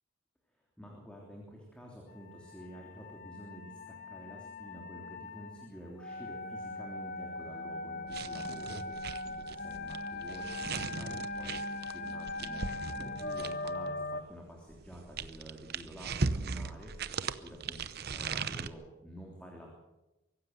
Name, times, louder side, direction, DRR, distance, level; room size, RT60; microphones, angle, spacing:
voice 1, 0.8-19.7, right 1 dB, 5° left, -1 dB, 3.2 m, -49 dB
sound 1, 2.2-14.2, left 2 dB, 40° left, 1.2 m, -40 dB
sound 2, 8.1-13.9 14.7-18.7, right 4 dB, 50° right, 0.8 m, -38 dB
24.0 x 15.5 x 8.0 m, 1.0 s
head